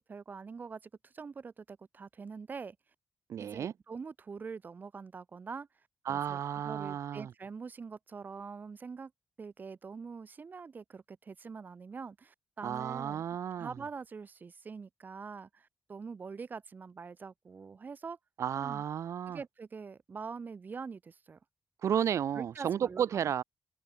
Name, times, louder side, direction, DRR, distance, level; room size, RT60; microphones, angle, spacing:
voice 1, 0.1-2.8 3.4-5.7 6.1-9.1 9.4-13.2 13.6-18.2 18.6-18.8 19.3-21.4 21.9-22.0 22.3-23.3, right 5 dB, 35° right, 2.6 m, -44 dB
voice 2, 3.3-3.7 6.1-7.3 12.6-13.7 18.4-19.4 21.8-23.4, right 9 dB, 70° right, 1.7 m, -33 dB
wide cardioid pair, 155°, 5 cm